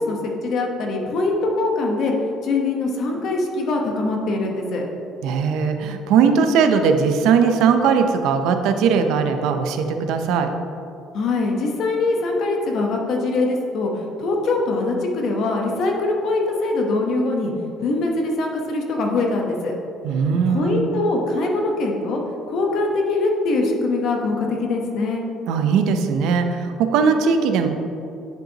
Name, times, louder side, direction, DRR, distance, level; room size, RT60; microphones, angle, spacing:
voice 1, 0.1-2.1 2.4-4.8 11.1-17.5 17.8-19.7 20.5-22.2 22.5-25.2, left 2 dB, 50° left, 1 dB, 1.0 m, -23 dB
voice 2, 5.2-10.5 20.0-20.9 25.5-27.7, right 6 dB, 70° right, 7 dB, 0.5 m, -19 dB
10.5 x 5.3 x 2.9 m, 2.7 s
cardioid pair, 160°, 0 cm